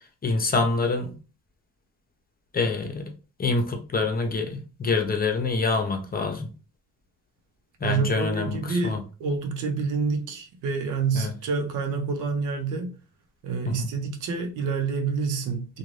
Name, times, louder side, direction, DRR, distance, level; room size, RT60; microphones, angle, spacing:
voice 1, 0.2-1.2 2.5-3.1 3.4-6.5 7.8-9.0 11.1-11.3 13.6-13.9, left 3 dB, 30° left, 0.7 m, -26 dB
voice 2, 7.8-12.9 13.4-15.8, right 4 dB, 85° right, 0.7 m, -28 dB
2.5 x 2.3 x 3.2 m
cardioid pair, 90°, 30 cm